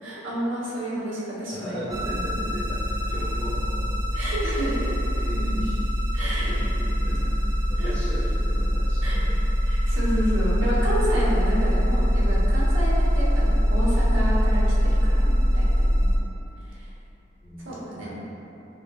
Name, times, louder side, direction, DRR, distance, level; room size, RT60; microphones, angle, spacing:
voice 1, 0.0-1.8 4.1-4.9 6.1-6.5 7.8-7.9 9.0-9.2 9.6-15.9 16.6-16.9 17.6-18.1, equal, 85° right, -6 dB, 1.2 m, -30 dB
voice 2, 1.5-3.9 5.2-5.8 6.4-9.7 16.0-16.1 17.4-18.2, equal, 30° left, -9 dB, 0.6 m, -37 dB
sound 1, 1.9-16.2, equal, 20° right, 0.4 m, -23 dB
5.3 x 2.4 x 3.7 m, 3.0 s
head